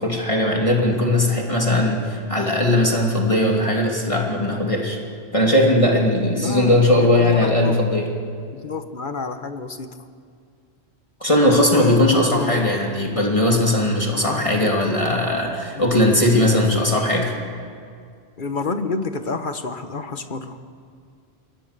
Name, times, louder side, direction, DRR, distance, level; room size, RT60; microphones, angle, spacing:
voice 1, 0.0-5.0 5.3-8.1 11.2-17.4, left 1 dB, 30° left, -1 dB, 2.9 m, -19 dB
voice 2, 6.4-7.7 8.5-9.9 11.5-12.6 14.2-14.7 16.1-16.2 17.0-17.2 18.4-20.6, left 4 dB, 50° left, 8 dB, 1.5 m, -29 dB
27.0 x 22.5 x 6.8 m, 2.2 s
omnidirectional pair, 1.1 m